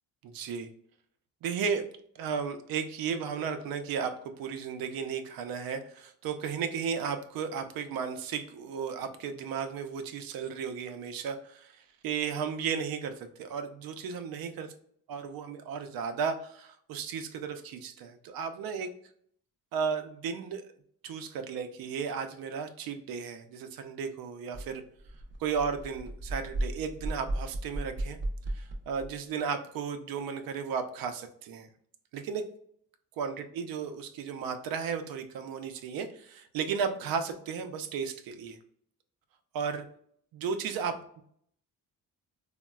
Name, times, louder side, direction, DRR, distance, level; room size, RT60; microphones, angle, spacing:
voice 1, 0.2-0.7 1.4-1.9 2.2-14.7 15.1-18.9 19.7-20.6 21.0-24.8 25.4-28.2 28.5-31.7 32.1-32.4 33.2-38.6 39.5-39.8 40.3-41.2, right 6 dB, 85° right, 8 dB, 0.5 m, -34 dB
sound 1, 24.5-24.7 25.0-29.1, right 1 dB, 35° right, 0.4 m, -35 dB
3.9 x 2.1 x 2.2 m, 0.65 s
cardioid pair, 145°, 34 cm